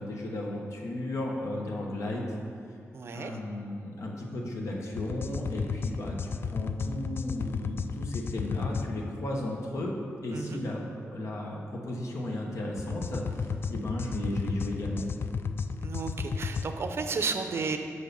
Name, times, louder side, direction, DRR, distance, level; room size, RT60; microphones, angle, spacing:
voice 1, 0.0-2.4 3.1-9.9 10.2-15.1, left 1 dB, 70° left, -1 dB, 1.1 m, -34 dB
voice 2, 2.9-3.3 10.3-10.6 15.8-17.8, right 4 dB, 50° right, 6 dB, 0.6 m, -32 dB
sound 1, 5.0-8.9 12.8-16.7, left 5 dB, 45° left, 0.3 m, -33 dB
6.3 x 5.6 x 6.8 m, 2.2 s
wide cardioid pair, 145°, 5 cm